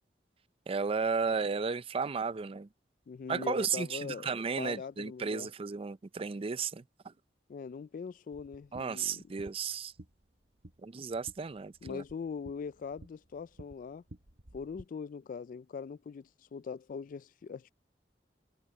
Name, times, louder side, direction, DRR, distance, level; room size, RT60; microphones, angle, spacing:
voice 1, 0.7-2.7 3.3-7.1 8.7-9.9 10.8-12.0, right 5 dB, 35° right, 0.4 m, -34 dB
voice 2, 3.1-4.3 4.6-5.5 7.5-9.2 11.8-14.0 14.5-17.7, left 5 dB, 50° left, 0.3 m, -41 dB
sound 1, 8.3-14.8, right 1 dB, 65° right, 1.5 m, -54 dB
head